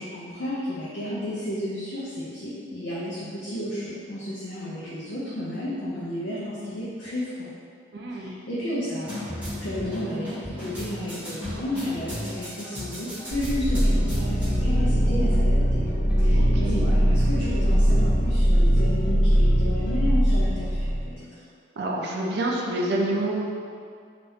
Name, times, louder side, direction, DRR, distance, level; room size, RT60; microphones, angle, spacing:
voice 1, 0.0-7.5 8.0-15.8 16.2-21.4, left 1 dB, 70° left, -9 dB, 0.5 m, -32 dB
voice 2, 7.9-8.4 16.3-16.9 21.8-23.5, right 1 dB, 55° right, -1 dB, 0.3 m, -28 dB
sound 1, 9.0-20.0, equal, 10° right, 1.0 m, -37 dB
sound 2, 13.3-21.1, equal, 5° left, 1.3 m, -21 dB
3.4 x 2.4 x 2.7 m, 2.2 s
head